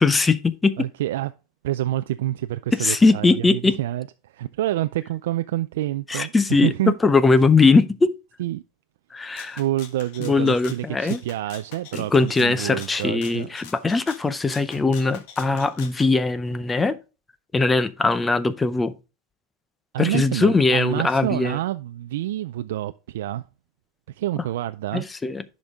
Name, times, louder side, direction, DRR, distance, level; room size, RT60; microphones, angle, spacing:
voice 1, 0.0-0.9 2.8-3.8 6.1-8.1 9.1-9.6 10.2-11.2 11.9-17.0 17.5-18.9 20.0-21.6 24.9-25.4, left 3 dB, 10° left, 0.5 m, -20 dB
voice 2, 0.8-1.3 1.6-6.9 8.4-8.6 9.6-13.5 19.9-23.4 24.1-25.1, right 14 dB, 80° right, 0.4 m, -27 dB
Rattle (instrument), 9.4-16.1, left 8 dB, 55° left, 1.3 m, -44 dB
10.5 x 5.2 x 3.6 m
supercardioid pair, 160°, 0 cm